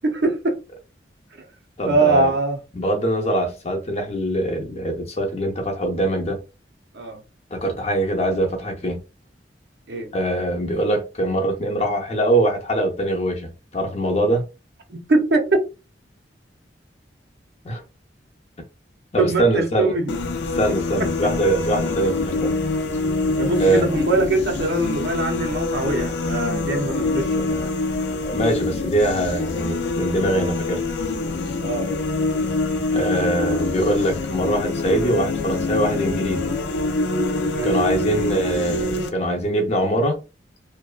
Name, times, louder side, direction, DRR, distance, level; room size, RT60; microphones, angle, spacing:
voice 1, 0.0-0.6 1.9-2.6 6.9-7.2 9.9-10.1 14.9-15.7 19.2-20.1 23.4-27.7 31.6-31.9 37.5-37.7, right 2 dB, 70° right, 0.6 m, -22 dB
voice 2, 1.8-2.3 2.7-6.4 7.5-9.0 10.1-14.5 17.6-17.8 19.1-20.0 20.5-22.5 23.6-23.9 28.3-30.8 32.9-36.5 37.6-40.2, right 1 dB, 35° left, 0.6 m, -23 dB
sound 1, 20.1-39.1, left 2 dB, 80° left, 0.4 m, -25 dB
2.6 x 2.2 x 2.3 m
head